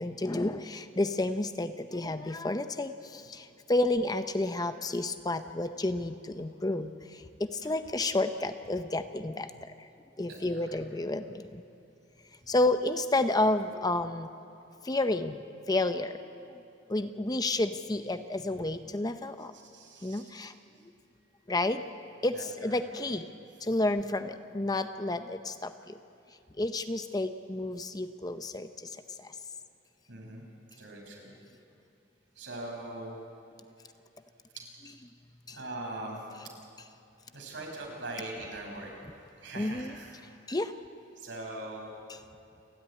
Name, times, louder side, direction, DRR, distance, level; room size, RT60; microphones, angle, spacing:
voice 1, 0.0-9.9 10.2-11.6 12.5-14.3 14.8-16.4 16.9-19.5 20.0-20.5 21.5-21.8 22.2-23.3 23.6-26.0 26.6-29.4 35.5-35.6 39.6-40.0 40.5-40.7 42.1-42.2, left 2 dB, 20° left, 9 dB, 0.7 m, -31 dB
voice 2, 10.2-10.8 19.5-20.5 22.3-22.8 30.1-30.4 30.8-31.3 32.4-33.2 35.5-36.2 37.3-38.9 39.4-40.1 41.2-41.9, right 2 dB, 75° right, 0 dB, 5.9 m, -41 dB
28.5 x 12.0 x 9.7 m, 2.7 s
head